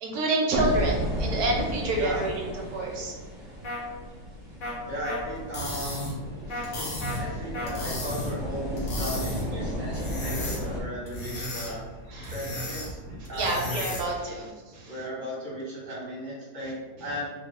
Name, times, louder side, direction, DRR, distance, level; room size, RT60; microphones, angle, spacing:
voice 1, 0.0-2.4 2.7-3.1 6.5-7.2 9.5-9.7 12.1-12.3 13.1-15.0, right 2 dB, 70° right, -1 dB, 1.2 m, -29 dB
sound 1, 0.5-10.8, equal, ahead, 0.4 m, -34 dB
voice 2, 1.9-2.2 4.9-6.1 7.1-11.8 12.3-13.0 13.3-13.7 14.9-17.3, equal, 30° right, -7 dB, 1.4 m, -36 dB
sound 2, 3.6-3.8 4.6-4.7 5.0-5.2 6.5-6.6 7.0-7.2 7.5-7.7, left 1 dB, 50° left, 0.6 m, -33 dB
sound 3, 5.3-14.2, left 1 dB, 80° left, 1.7 m, -35 dB
3.6 x 2.3 x 3.3 m, 1.4 s
omnidirectional pair, 1.9 m